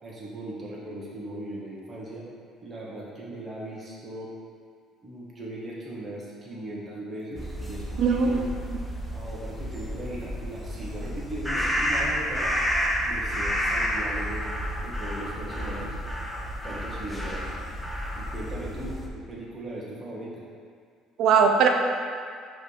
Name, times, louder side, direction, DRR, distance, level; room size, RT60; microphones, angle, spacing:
voice 1, 0.0-2.3 2.6-4.3 5.0-8.4 9.1-12.5 13.0-14.5 14.8-15.9 16.6-17.5 18.1-20.4, right 1 dB, 25° right, -6 dB, 1.3 m, -38 dB
sound 1, 7.4-19.1, equal, 5° left, 0.8 m, -30 dB
voice 2, 8.0-8.5 21.2-21.7, right 6 dB, 70° right, 3 dB, 0.5 m, -20 dB
5.2 x 3.3 x 5.5 m, 2.1 s
cardioid pair, 100°, 0 cm